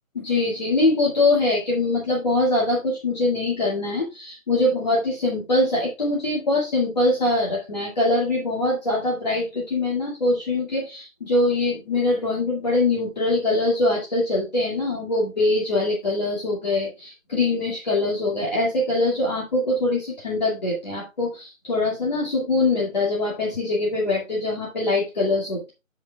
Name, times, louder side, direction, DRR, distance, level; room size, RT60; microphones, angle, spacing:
voice 1, 0.1-25.7, left 2 dB, 30° left, -4 dB, 2.1 m, -23 dB
15.5 x 5.2 x 2.3 m, 0.26 s
figure-of-eight pair, 165°, 41 cm